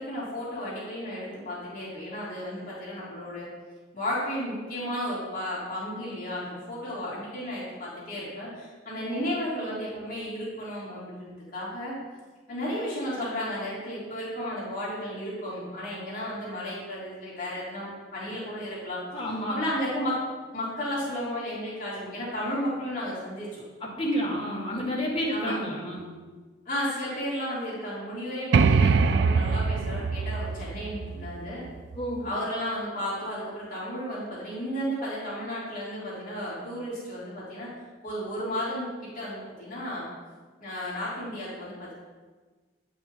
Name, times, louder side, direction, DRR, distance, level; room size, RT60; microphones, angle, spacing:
voice 1, 0.0-3.5 3.9-11.9 12.5-19.0 19.5-20.2 20.5-23.5 25.3-25.6 26.6-31.6 32.2-37.7 38.0-38.9 39.1-40.0 40.6-41.9, equal, 45° left, -8 dB, 3.0 m, -33 dB
voice 2, 19.1-19.6 23.8-26.1 31.9-32.3, equal, 25° left, -4 dB, 1.9 m, -30 dB
sound 1, 28.5-32.2, right 5 dB, 60° right, 0.3 m, -24 dB
9.9 x 5.6 x 4.5 m, 1.4 s
head